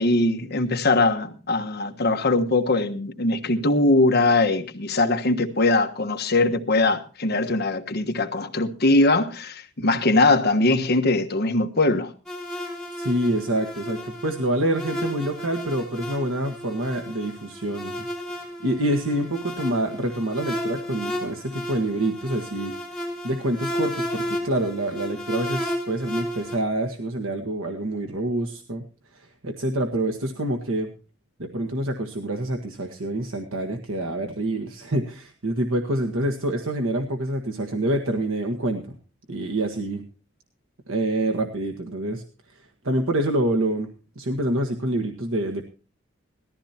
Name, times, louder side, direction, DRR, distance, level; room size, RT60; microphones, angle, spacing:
voice 1, 0.0-12.1, left 2 dB, 50° left, 1.4 m, -21 dB
sound 1, 12.3-26.6, equal, ahead, 5.6 m, -33 dB
voice 2, 13.0-18.1 18.3-28.8 29.1-30.9 31.4-39.0 39.3-40.0 40.9-42.2 42.5-43.9 44.1-45.6, right 1 dB, 85° right, 1.5 m, -27 dB
19.0 x 14.0 x 2.9 m
head